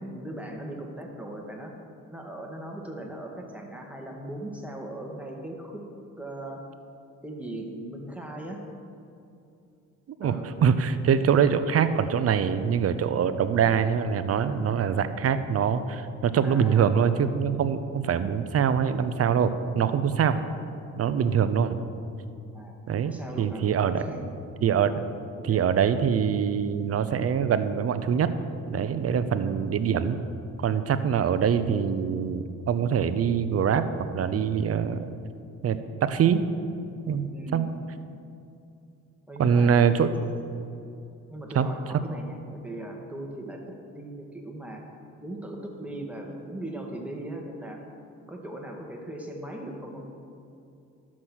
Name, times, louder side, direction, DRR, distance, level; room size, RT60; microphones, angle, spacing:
voice 1, 0.0-1.7 2.1-5.8 6.2-6.6 7.2-8.6 10.2-10.5 16.4-16.9 20.4-20.7 22.5-23.6 24.0-24.3 25.4-25.6 37.3-37.7 39.3-39.8 41.3-44.9 45.2-47.8 48.3-50.0, right 1 dB, 5° right, 0 dB, 2.1 m, -39 dB
voice 2, 10.2-20.4 21.0-21.8 22.9-23.1 23.4-24.0 24.6-25.0 25.4-28.3 28.7-30.2 30.6-35.0 35.6-36.4 37.1-37.7 39.4-40.1 41.5-41.7, right 7 dB, 50° right, 11 dB, 0.8 m, -24 dB
12.0 x 7.4 x 6.3 m, 2.6 s
cardioid pair, 90°, 30 cm